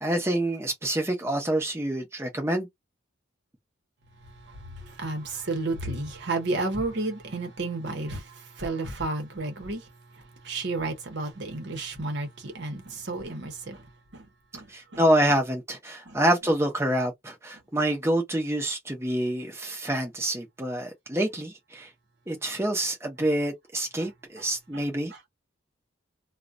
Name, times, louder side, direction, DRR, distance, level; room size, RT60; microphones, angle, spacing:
voice 1, 0.0-2.7 14.7-21.9 22.3-25.3, right 1 dB, 15° right, 0.7 m, -27 dB
voice 2, 4.5-9.8 10.4-13.8 14.1-14.3 14.5-14.7 14.9-15.0 16.1-16.2, right 2 dB, 55° right, 0.8 m, -32 dB
2.4 x 2.1 x 2.4 m
head